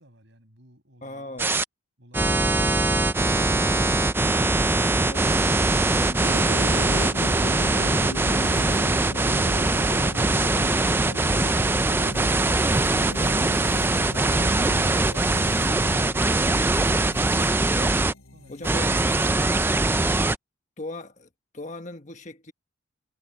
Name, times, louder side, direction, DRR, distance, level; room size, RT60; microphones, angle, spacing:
voice 1, 0.0-1.5 18.3-19.7, equal, 55° right, 7.6 m, -55 dB
voice 2, 1.0-1.5 2.5-2.6 5.0-5.6 5.9-6.3 17.7-18.0 18.5-18.9 20.8-22.5, left 2 dB, 35° left, 1.3 m, -38 dB
sound 1, 1.4-1.6 2.1-18.1 18.6-20.3, right 2 dB, 10° right, 0.3 m, -22 dB
sound 2, 6.2-19.7, left 1 dB, 90° left, 5.3 m, -38 dB
head